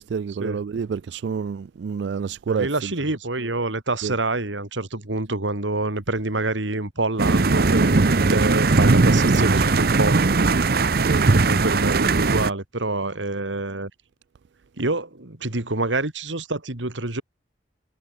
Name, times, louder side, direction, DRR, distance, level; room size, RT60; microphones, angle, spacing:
voice 1, 0.0-2.9 4.0-4.2 11.0-11.3, right 6 dB, 70° right, 0.3 m, -28 dB
voice 2, 2.5-10.4 11.2-13.9 14.8-17.2, right 2 dB, 90° right, 2.8 m, -27 dB
sound 1, 7.2-12.5, right 3 dB, 55° right, 0.7 m, -19 dB
head